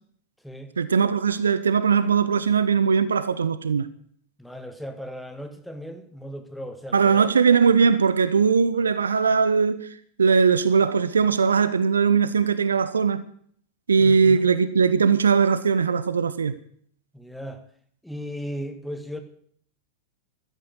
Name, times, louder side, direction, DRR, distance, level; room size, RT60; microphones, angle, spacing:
voice 1, 0.8-3.9 6.9-9.9 10.2-13.2 13.9-16.6, right 6 dB, 70° right, 0.8 m, -20 dB
voice 2, 4.4-7.3 14.0-14.5 17.1-17.6 18.0-19.2, equal, ahead, 1.7 m, -36 dB
13.0 x 10.5 x 8.1 m
figure-of-eight pair, 90°, 0 cm